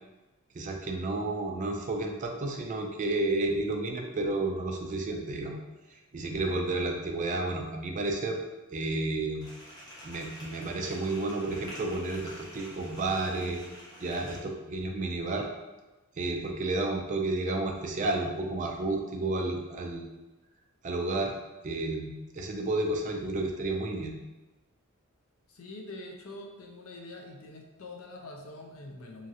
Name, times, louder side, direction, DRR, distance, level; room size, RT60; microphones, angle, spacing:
voice 1, 0.5-5.6 5.9-8.4 8.7-9.5 10.0-13.6 14.0-15.5 16.2-20.1 20.8-21.3 21.6-24.2, right 2 dB, 35° right, 2 dB, 0.4 m, -31 dB
sound 1, 9.4-14.4, equal, 20° left, 0.8 m, -47 dB
voice 2, 25.5-29.3, left 2 dB, 70° left, 1 dB, 0.5 m, -44 dB
3.0 x 2.4 x 2.7 m, 1.1 s
head